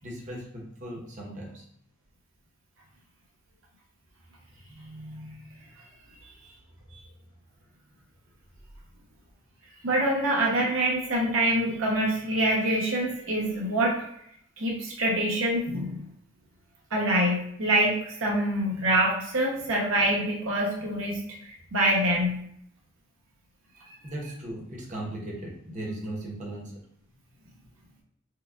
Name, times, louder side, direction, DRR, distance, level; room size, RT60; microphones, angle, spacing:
voice 1, 0.0-1.6 6.2-6.6 6.9-7.1 20.8-20.9 24.0-26.7, right 1 dB, 40° right, -3 dB, 0.9 m, -38 dB
voice 2, 4.8-5.3 9.8-14.0 14.6-16.0 16.9-21.2 21.4-22.4, right 1 dB, 70° right, -2 dB, 0.8 m, -25 dB
4.6 x 2.3 x 2.3 m, 0.70 s
head